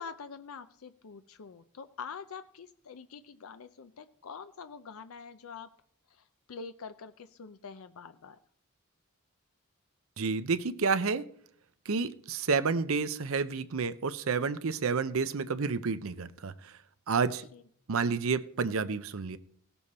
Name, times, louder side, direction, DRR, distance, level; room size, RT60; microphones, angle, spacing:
voice 1, 0.0-5.7 6.1-8.4 17.5-17.6, left 5 dB, 75° left, 11 dB, 0.5 m, -45 dB
voice 2, 10.2-11.3 11.9-16.7 17.1-17.5 17.9-19.4, right 5 dB, 70° right, 14 dB, 0.6 m, -30 dB
17.0 x 7.0 x 4.2 m, 0.63 s
head